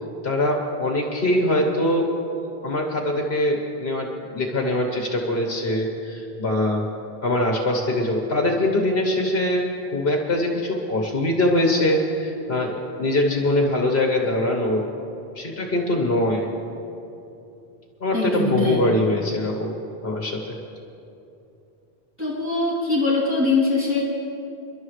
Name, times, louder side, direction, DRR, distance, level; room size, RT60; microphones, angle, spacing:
voice 1, 0.2-2.1 2.6-6.8 7.2-14.8 15.3-16.5 18.0-19.7 20.0-20.5, left 1 dB, 65° left, 1 dB, 1.5 m, -23 dB
voice 2, 18.1-18.8 22.2-24.0, left 3 dB, 10° right, -9 dB, 3.1 m, -22 dB
29.0 x 11.5 x 3.2 m, 2.8 s
omnidirectional pair, 1.1 m